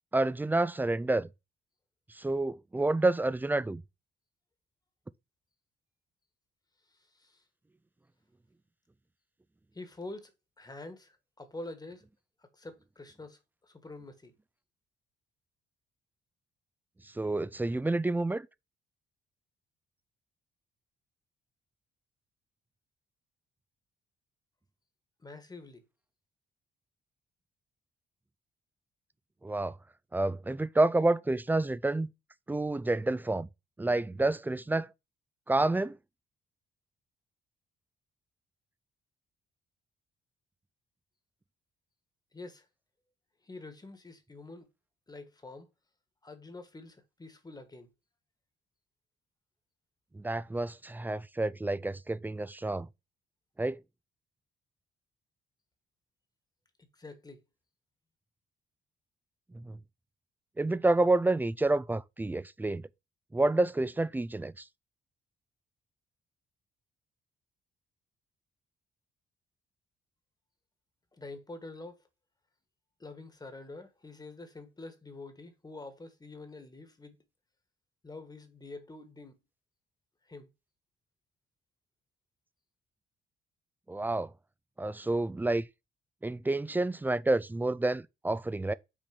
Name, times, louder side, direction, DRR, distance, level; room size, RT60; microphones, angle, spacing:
voice 1, 0.1-1.3 2.1-3.8 17.1-18.5 29.4-29.8 30.1-32.1 32.5-33.5 33.8-34.9 35.5-36.0 50.1-52.9 53.6-53.8 59.5-59.8 60.6-62.9 63.3-64.7 83.9-84.3 84.8-85.7 86.2-88.7, right 2 dB, 10° right, 0.4 m, -29 dB
voice 2, 9.7-10.3 10.6-12.1 12.4-14.3 25.2-25.8 42.3-42.6 43.4-44.7 45.1-45.7 46.2-47.9 56.9-57.4 71.1-72.0 73.0-77.2 78.0-79.4 80.3-80.5, left 2 dB, 20° left, 1.5 m, -46 dB
6.1 x 4.2 x 5.8 m
cardioid pair, 90°, 20 cm